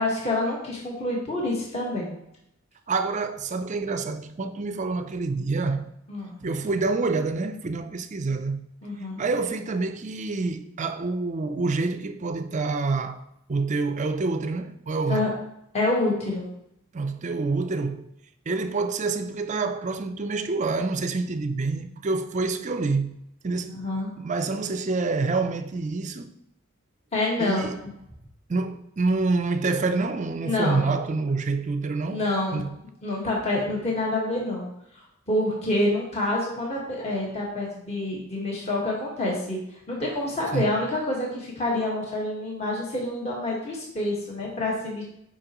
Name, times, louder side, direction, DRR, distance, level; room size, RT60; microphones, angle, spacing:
voice 1, 0.0-2.1 6.1-6.4 8.8-9.2 15.1-15.3 15.7-16.5 23.7-24.1 27.1-27.9 30.4-30.9 32.0-32.6 33.0-34.7 34.9-39.6 39.9-45.0, left 1 dB, 30° left, 1.5 m, -27 dB
voice 2, 2.9-5.9 6.3-8.7 9.0-13.2 13.5-15.3 16.9-18.1 18.5-23.2 23.4-23.8 24.2-26.4 27.4-27.8 28.5-32.2 32.5-32.8 40.5-40.7, right 3 dB, 35° right, 0.4 m, -27 dB
8.7 x 5.1 x 3.0 m
head